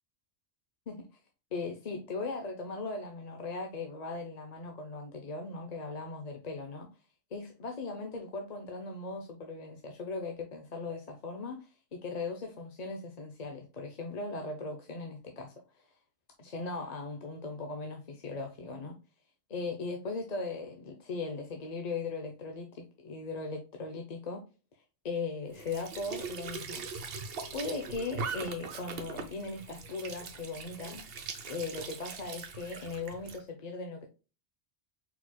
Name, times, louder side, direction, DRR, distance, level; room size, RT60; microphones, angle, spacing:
voice 1, 1.5-6.9 7.3-15.9 16.4-18.9 19.5-24.4 25.0-26.9 27.1-31.0 31.5-34.1, left 3 dB, 40° left, 0.7 m, -38 dB
Squeak / Sink (filling or washing) / Trickle dribble, 25.5-33.4, right 4 dB, 60° right, 0.9 m, -41 dB
4.5 x 4.2 x 2.2 m
omnidirectional pair, 1.2 m